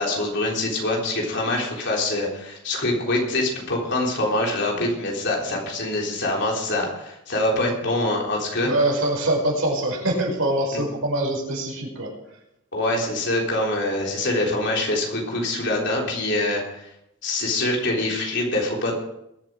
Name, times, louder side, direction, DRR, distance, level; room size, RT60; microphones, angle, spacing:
voice 1, 0.0-8.7 10.7-10.8 12.7-16.6 17.2-18.9, left 2 dB, 55° left, -1 dB, 3.7 m, -24 dB
voice 2, 8.6-12.1, right 1 dB, 75° right, -1 dB, 5.5 m, -24 dB
21.5 x 8.3 x 4.8 m, 0.83 s
head